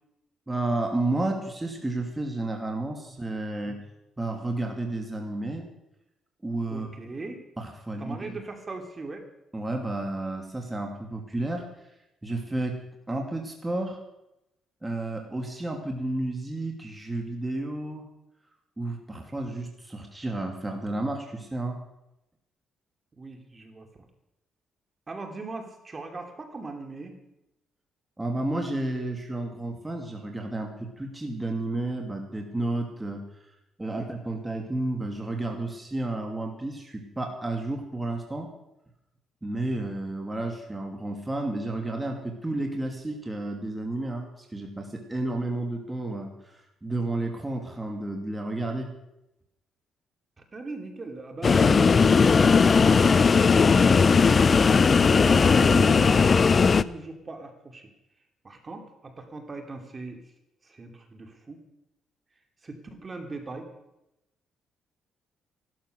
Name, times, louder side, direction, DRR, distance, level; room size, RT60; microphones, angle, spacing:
voice 1, 0.5-3.8 4.2-5.7 6.4-6.9 7.6-8.4 9.5-11.7 12.2-12.8 13.1-14.0 14.8-18.1 18.8-21.8 28.2-33.2 33.8-38.5 39.4-48.9, right 2 dB, 15° right, 2 dB, 2.6 m, -31 dB
voice 2, 6.7-7.4 8.0-9.2 19.3-19.4 23.1-23.9 25.1-27.1 33.9-34.1 50.4-54.6 55.1-57.9 58.4-60.2 60.6-61.6 62.6-63.7, right 3 dB, 30° right, 5 dB, 2.7 m, -39 dB
sound 1, 51.4-56.8, left 5 dB, 40° left, 0.5 m, -18 dB
15.0 x 13.0 x 6.6 m, 0.88 s
cardioid pair, 90°, 0 cm